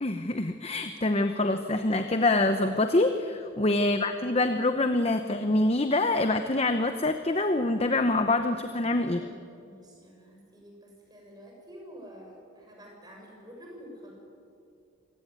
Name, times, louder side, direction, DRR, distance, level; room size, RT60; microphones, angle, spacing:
voice 1, 0.0-9.2, left 2 dB, 30° left, 8 dB, 0.8 m, -25 dB
voice 2, 3.8-4.4 9.0-14.1, equal, 20° right, -1 dB, 6.9 m, -49 dB
26.5 x 17.5 x 9.6 m, 2.5 s
head